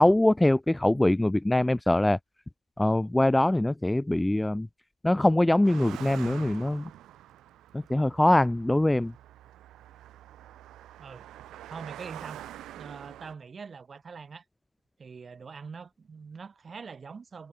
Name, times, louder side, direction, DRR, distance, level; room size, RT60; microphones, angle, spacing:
voice 1, 0.0-2.2 2.8-4.7 5.0-6.9 7.7-9.1, left 1 dB, 10° left, 0.3 m, -23 dB
Car passing by, 5.6-13.3, right 13 dB, 60° right, 0.8 m, -45 dB
voice 2, 11.7-14.4 15.0-17.5, right 5 dB, 30° right, 1.3 m, -43 dB
hypercardioid pair, 70°, 0 cm